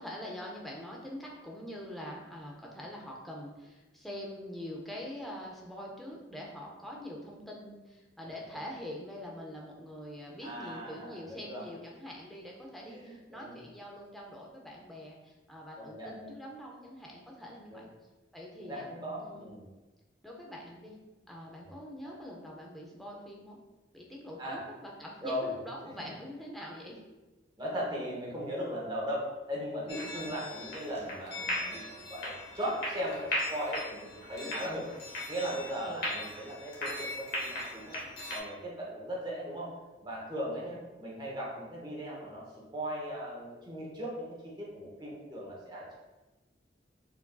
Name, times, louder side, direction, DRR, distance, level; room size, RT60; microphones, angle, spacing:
voice 1, 0.0-17.9 18.3-18.9 19.2-19.5 20.2-20.9 21.3-23.6 23.9-27.0 29.8-30.3 34.4-34.8 35.7-36.1 40.5-40.8, left 1 dB, ahead, -3 dB, 0.5 m, -44 dB
voice 2, 10.4-11.6 12.8-13.6 15.8-16.3 17.7-17.8 18.6-19.6 21.6-21.7 22.0-22.2 24.4-24.6 25.2-25.5 27.6-34.8 35.3-38.0 38.3-39.7 40.0-42.4 42.7-46.0, equal, 25° right, -4 dB, 0.8 m, -38 dB
sound 1, 29.9-38.4, left 1 dB, 55° left, 0.9 m, -38 dB
4.6 x 2.6 x 2.3 m, 1.1 s
head